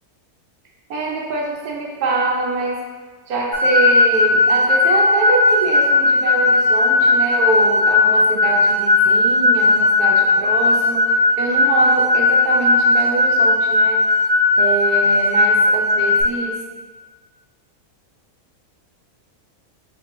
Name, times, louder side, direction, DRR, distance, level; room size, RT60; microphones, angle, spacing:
voice 1, 0.9-2.8 3.3-14.1 14.6-16.6, right 3 dB, 75° right, -1 dB, 1.1 m, -24 dB
sound 1, 3.5-16.2, left 2 dB, 30° left, 0.8 m, -16 dB
3.8 x 3.4 x 3.0 m, 1.4 s
omnidirectional pair, 1.6 m